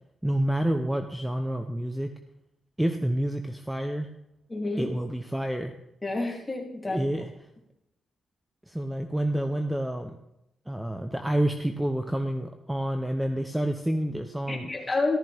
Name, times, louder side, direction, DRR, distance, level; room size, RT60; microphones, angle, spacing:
voice 1, 0.2-2.1 2.8-4.1 4.8-5.7 6.9-7.3 8.7-10.2 10.7-14.7, right 1 dB, 5° right, 6 dB, 0.8 m, -28 dB
voice 2, 4.5-4.9 6.0-7.0 14.5-15.2, left 3 dB, 20° left, -1 dB, 3.1 m, -29 dB
14.5 x 13.5 x 3.5 m, 0.84 s
cardioid pair, 95°, 0 cm